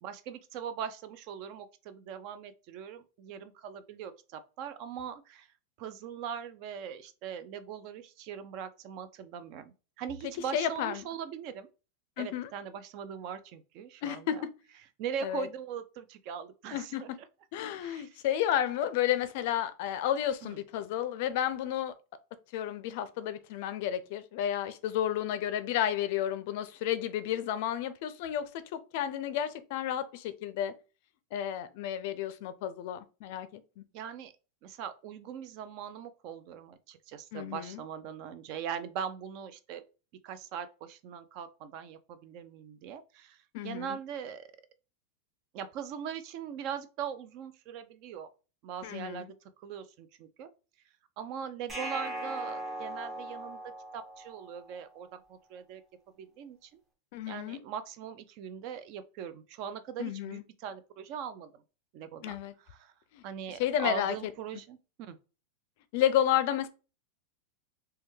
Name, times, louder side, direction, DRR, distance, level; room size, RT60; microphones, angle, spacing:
voice 1, 0.0-5.5 5.8-11.7 12.2-14.5 15.0-17.1 17.8-18.2 20.4-20.6 33.9-34.3 34.6-39.8 40.2-44.4 45.5-48.3 48.6-50.5 51.2-55.8 56.2-56.7 57.3-61.6 61.9-62.9 63.2-65.2, right 8 dB, 45° right, 0.4 m, -41 dB
voice 2, 10.5-11.1 12.2-12.5 14.0-14.5 15.2-15.5 16.7-17.0 17.5-21.9 22.5-30.7 31.3-33.8 37.3-37.8 43.5-44.0 48.8-49.3 57.1-57.6 60.0-60.4 62.2-62.5 63.1-63.2 63.6-64.1 65.9-66.7, left 10 dB, 55° left, 0.4 m, -31 dB
sound 1, 51.7-54.8, right 1 dB, 15° right, 0.8 m, -39 dB
3.2 x 2.2 x 3.1 m
supercardioid pair, 145°, 0 cm